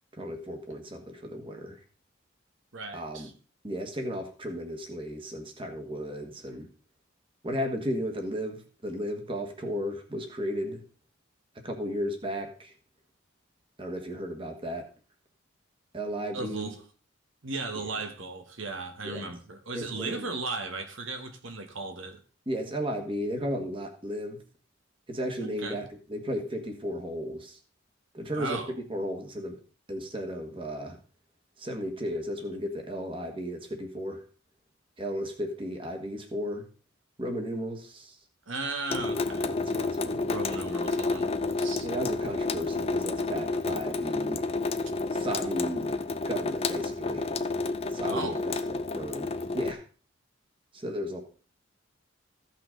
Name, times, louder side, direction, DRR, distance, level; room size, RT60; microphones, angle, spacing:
voice 1, 0.1-1.8 2.9-3.3 3.6-6.7 7.4-8.6 8.8-10.8 11.6-12.7 13.8-14.9 15.9-16.7 17.7-18.0 19.0-19.2 19.7-20.3 22.4-24.4 25.1-27.6 28.1-29.6 29.9-31.0 31.6-34.2 35.0-36.6 37.2-38.2 39.4-40.4 41.8-44.4 45.1-46.0 46.3-47.3 47.9-49.8 50.7-51.2, equal, 25° right, 1.5 m, -34 dB
voice 2, 2.7-3.3 16.3-16.8 17.4-22.2 25.4-25.8 28.3-28.7 38.5-39.5 40.3-41.9 48.0-48.4, right 3 dB, 70° right, 1.3 m, -36 dB
Water tap faucet / Sink (filling or washing) / Drip, 38.9-49.7, left 3 dB, 30° left, 0.5 m, -30 dB
15.0 x 5.9 x 3.8 m
head